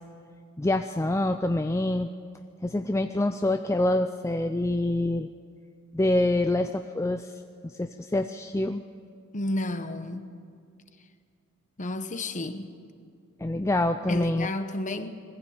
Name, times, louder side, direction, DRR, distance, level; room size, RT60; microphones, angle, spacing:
voice 1, 0.6-2.1 2.6-5.3 5.9-7.3 7.8-8.8 13.4-14.5, left 1 dB, 15° left, 0.4 m, -26 dB
voice 2, 9.3-10.3 11.8-12.7 14.1-15.2, left 1 dB, 35° left, 1.0 m, -32 dB
21.0 x 15.5 x 8.7 m
head